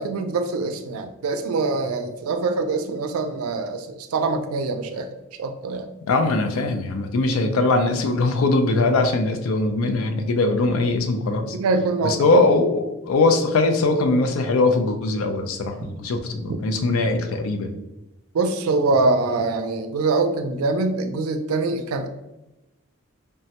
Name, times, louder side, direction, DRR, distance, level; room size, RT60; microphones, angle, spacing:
voice 1, 0.0-5.1 5.4-5.9 11.5-12.4 15.8-15.9 16.5-16.6 18.3-22.1, right 3 dB, 90° right, 7 dB, 0.4 m, -24 dB
voice 2, 6.1-11.6 12.0-17.7, left 3 dB, 80° left, 6 dB, 0.4 m, -21 dB
3.3 x 2.1 x 2.8 m, 0.95 s
head